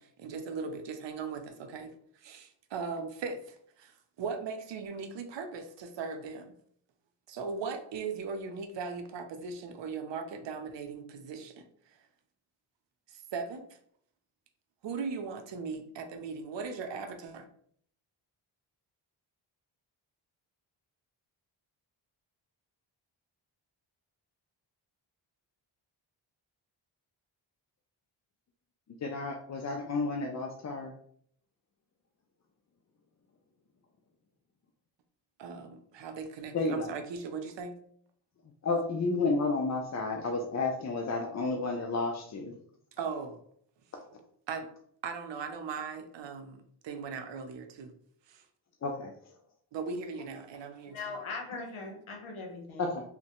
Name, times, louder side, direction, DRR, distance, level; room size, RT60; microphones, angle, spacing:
voice 1, 0.0-6.5 7.3-11.6 11.9-12.0 13.1-13.8 14.8-17.5 35.4-37.8 43.0-43.4 44.5-44.7 45.0-48.0 48.3-48.4 49.7-51.2, right 5 dB, 65° right, 7 dB, 0.6 m, -39 dB
voice 2, 29.0-30.9 36.5-36.9 38.6-42.5 48.8-49.1 52.8-53.0, left 3 dB, 35° left, 2 dB, 0.4 m, -31 dB
voice 3, 50.9-52.9, left 3 dB, 75° left, 2 dB, 0.8 m, -40 dB
3.1 x 2.1 x 2.9 m, 0.63 s
cardioid pair, 60°, 48 cm